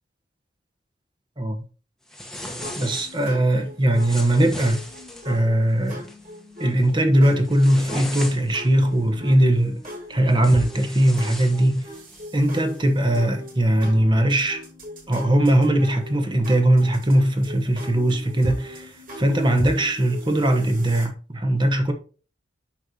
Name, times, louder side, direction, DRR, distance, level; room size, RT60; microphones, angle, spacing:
sound 1, 2.1-3.3 3.9-5.3 5.8-6.2 6.6-6.9 7.3-8.7 9.8-9.9 10.3-12.3, left 1 dB, 5° left, 1.1 m, -37 dB
sound 2, 2.6-21.0, equal, 45° right, 3.9 m, -38 dB
voice 1, 2.8-4.8 5.2-6.0 6.6-9.8 10.1-11.9 12.3-14.6 15.1-21.9, right 1 dB, 25° right, 1.1 m, -20 dB
8.6 x 6.6 x 2.8 m
head